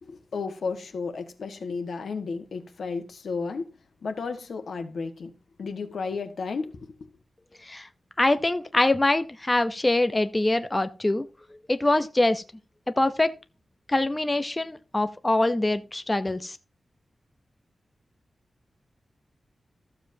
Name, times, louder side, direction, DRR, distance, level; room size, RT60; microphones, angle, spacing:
voice 1, 0.0-3.7 4.0-5.3 5.6-6.9, left 4 dB, 80° left, 1.4 m, -33 dB
voice 2, 8.2-11.3 11.7-12.4 13.0-13.3 13.9-16.6, left 2 dB, 20° left, 0.5 m, -24 dB
14.0 x 7.3 x 2.7 m
wide cardioid pair, 135°, 0 cm